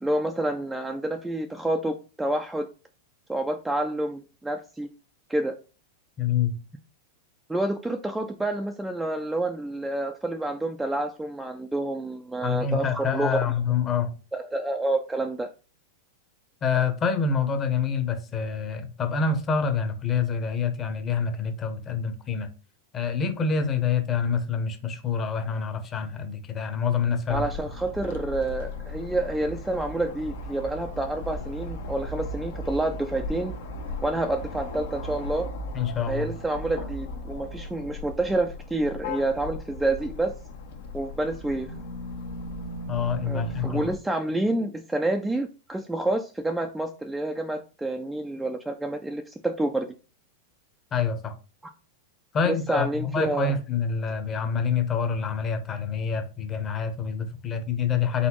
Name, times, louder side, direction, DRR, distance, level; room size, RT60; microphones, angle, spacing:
voice 1, 0.0-2.7 3.3-4.9 5.3-5.5 7.5-13.4 14.3-15.5 27.3-33.5 34.0-35.5 36.1-40.4 40.9-41.7 43.2-49.9 52.5-53.5, right 2 dB, 5° right, 0.3 m, -28 dB
voice 2, 6.2-6.5 12.4-14.1 16.6-22.5 22.9-27.5 35.7-36.3 42.9-43.8 50.9-51.3 52.3-58.3, left 6 dB, 25° left, 0.8 m, -26 dB
sound 1, 27.3-44.0, left 1 dB, 75° left, 1.0 m, -37 dB
4.1 x 3.8 x 3.0 m
supercardioid pair, 145°, 0 cm